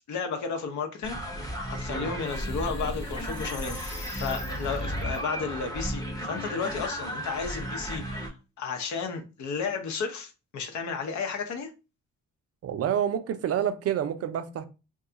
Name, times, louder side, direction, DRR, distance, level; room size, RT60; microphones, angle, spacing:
voice 1, 0.1-11.7, left 5 dB, 70° left, 0.8 m, -33 dB
sound 1, 1.0-8.3, equal, 10° left, 0.7 m, -35 dB
sound 2, 1.4-5.2, left 1 dB, 35° left, 1.1 m, -38 dB
voice 2, 12.6-14.7, right 9 dB, 55° right, 0.5 m, -28 dB
2.4 x 2.3 x 3.8 m
cardioid pair, 90°, 30 cm